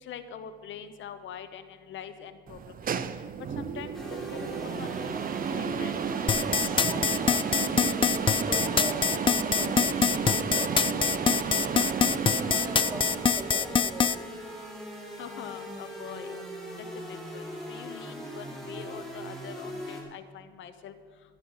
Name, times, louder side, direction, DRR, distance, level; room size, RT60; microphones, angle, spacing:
voice 1, 0.0-3.0 3.6-4.0 4.3-5.9 15.2-16.4 16.8-20.9, left 8 dB, 75° left, 10 dB, 0.9 m, -44 dB
sound 1, 2.5-14.1, right 7 dB, 45° right, 0.7 m, -33 dB
sound 2, 3.9-20.0, equal, ahead, 4.4 m, -40 dB
sound 3, 6.3-14.2, left 6 dB, 25° left, 0.4 m, -24 dB
voice 2, 6.7-14.1, right 1 dB, 20° right, 0 dB, 2.6 m, -41 dB
15.0 x 11.5 x 4.0 m, 1.5 s
cardioid pair, 90°, 20 cm